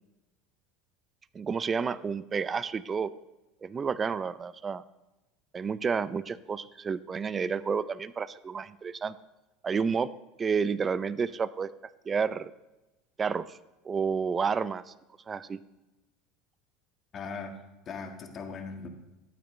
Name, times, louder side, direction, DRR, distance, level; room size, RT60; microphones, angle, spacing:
voice 1, 1.3-3.1 3.6-4.8 5.5-9.2 9.6-10.1 10.4-11.7 12.1-12.5 13.2-13.6 13.8-14.9 15.3-15.6, right 5 dB, 30° right, 17 dB, 0.4 m, -30 dB
voice 2, 17.1-18.9, left 4 dB, 40° left, 4 dB, 1.5 m, -39 dB
12.5 x 8.7 x 3.1 m, 1.0 s
hypercardioid pair, 85°, 0 cm